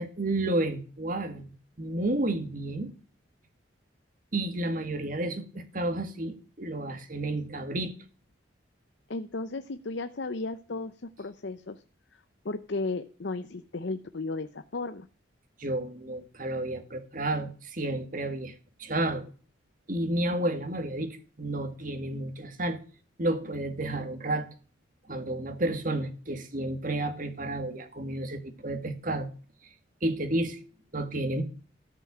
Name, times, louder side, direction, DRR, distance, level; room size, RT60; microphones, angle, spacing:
voice 1, 0.0-2.9 4.3-7.9 15.6-19.3 19.9-22.8 23.2-24.5 25.1-29.3 30.0-30.6 30.9-31.4, right 1 dB, 45° right, 1.9 m, -31 dB
voice 2, 9.1-11.8 12.4-15.1, left 3 dB, 65° left, 0.7 m, -34 dB
13.5 x 5.8 x 8.7 m
head